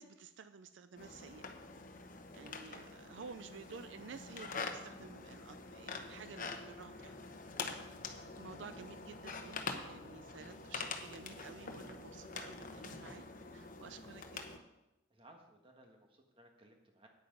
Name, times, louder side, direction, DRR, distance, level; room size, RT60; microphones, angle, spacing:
voice 1, 0.0-1.5 2.3-7.2 7.9-8.0 8.4-13.2 13.5-14.6, right 5 dB, 85° right, 11 dB, 0.5 m, -52 dB
sound 1, 1.0-14.6, left 4 dB, 45° left, 1.0 m, -46 dB
voice 2, 2.2-3.3 15.1-17.1, right 1 dB, 30° right, 3 dB, 1.6 m, -62 dB
9.6 x 8.5 x 5.4 m, 0.95 s
head